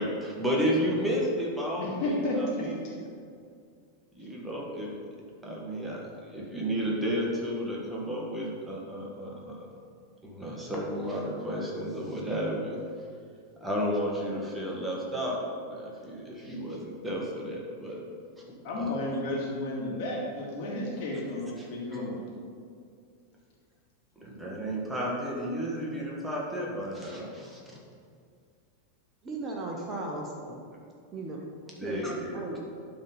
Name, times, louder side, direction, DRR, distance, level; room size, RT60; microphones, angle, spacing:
voice 1, 0.0-3.0 4.1-4.9 5.4-9.7 10.2-12.8 13.6-15.4 15.7-18.0 18.7-18.9 21.6-21.7 21.9-22.0 24.2-27.8 31.8-32.3, equal, 5° right, -3 dB, 1.7 m, -32 dB
voice 2, 1.8-2.7 18.6-22.2, left 1 dB, 45° left, -4 dB, 2.3 m, -32 dB
voice 3, 29.2-30.6 31.1-31.5 31.8-32.0 32.3-32.6, right 2 dB, 25° right, -1 dB, 1.1 m, -36 dB
11.5 x 4.0 x 5.4 m, 2.2 s
figure-of-eight pair, 90°, 0 cm